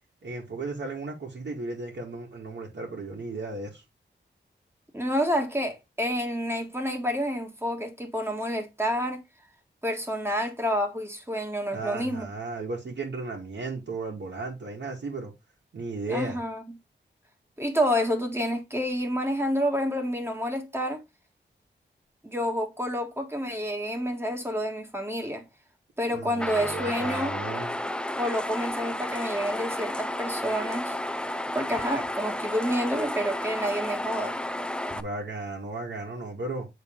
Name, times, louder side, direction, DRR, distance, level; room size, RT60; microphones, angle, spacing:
voice 1, 0.2-3.8 11.7-15.3 15.7-16.4 26.1-27.7 34.9-36.7, right 3 dB, 70° right, 1.9 m, -35 dB
voice 2, 4.9-9.2 9.8-12.3 16.1-16.6 17.6-21.0 22.2-25.4 26.0-27.4 28.2-31.0 31.5-34.4, equal, 10° right, 1.6 m, -29 dB
sound 1, 26.4-35.0, left 1 dB, 5° left, 0.5 m, -32 dB
7.3 x 3.9 x 3.7 m
wide cardioid pair, 75°, 19 cm